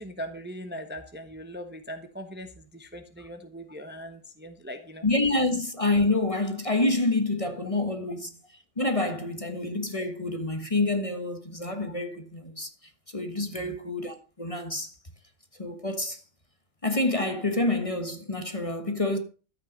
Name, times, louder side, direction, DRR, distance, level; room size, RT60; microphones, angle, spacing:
voice 1, 0.0-5.1 13.5-13.8, equal, 10° right, 1.0 m, -40 dB
voice 2, 5.0-8.3 8.8-12.7 13.1-14.9 15.6-16.2 16.8-19.2, left 2 dB, 25° left, 1.4 m, -27 dB
13.0 x 8.7 x 5.2 m
omnidirectional pair, 1.4 m